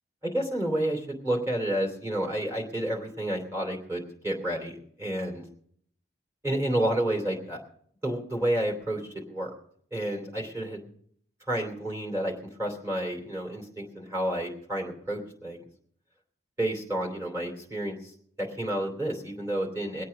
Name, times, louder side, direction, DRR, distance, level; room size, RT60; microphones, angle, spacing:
voice 1, 0.2-5.4 6.4-7.6 8.0-9.5 9.9-10.9 11.5-12.3 12.6-15.6 16.6-18.1 18.4-20.0, right 1 dB, 15° right, 1 dB, 2.9 m, -30 dB
22.0 x 8.5 x 5.1 m, 0.63 s
head